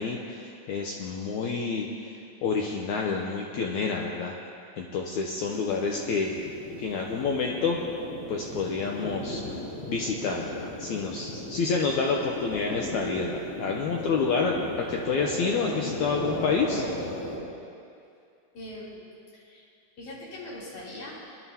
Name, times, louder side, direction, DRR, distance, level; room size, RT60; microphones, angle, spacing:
voice 1, 0.0-2.1 2.4-4.3 4.8-6.3 6.8-7.8 8.3-9.6 9.9-16.8, left 4 dB, 80° left, 0 dB, 1.7 m, -28 dB
sound 1, 5.4-17.4, left 1 dB, 25° left, 3.2 m, -36 dB
voice 2, 18.5-19.0 19.3-19.7 20.0-21.2, left 1 dB, 55° left, -8 dB, 4.5 m, -41 dB
22.5 x 11.0 x 2.8 m, 2.5 s
omnidirectional pair, 4.1 m